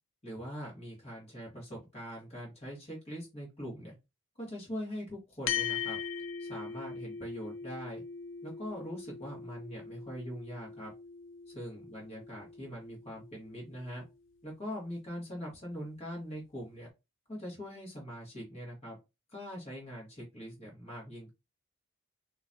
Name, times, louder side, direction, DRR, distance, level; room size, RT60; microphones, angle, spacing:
voice 1, 0.2-3.9 4.4-6.0 6.4-8.0 8.4-10.9 11.5-14.0 14.4-16.9 17.3-19.0 19.3-21.3, equal, 30° left, -3 dB, 1.7 m, -42 dB
sound 1, 5.5-14.1, left 7 dB, 60° left, 0.3 m, -41 dB
3.9 x 3.1 x 2.6 m, 0.24 s
head